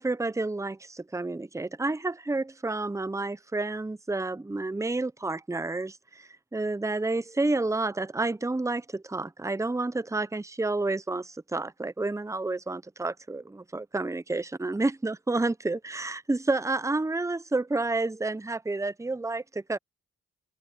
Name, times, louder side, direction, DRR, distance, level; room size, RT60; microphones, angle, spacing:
voice 1, 0.0-19.8, right 2 dB, 10° right, 0.7 m, -30 dB
cardioid pair, 45°, 30 cm